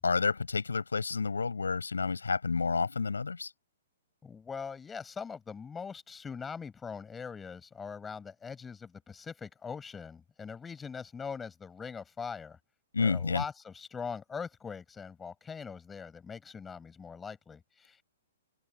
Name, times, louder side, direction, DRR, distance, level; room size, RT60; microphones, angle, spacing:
voice 1, 0.0-3.5 12.9-13.4, left 4 dB, 70° left, 7.3 m, -30 dB
voice 2, 4.2-12.6 13.0-18.0, left 6 dB, 10° left, 7.7 m, -42 dB
open air
figure-of-eight pair, 115°, 0 cm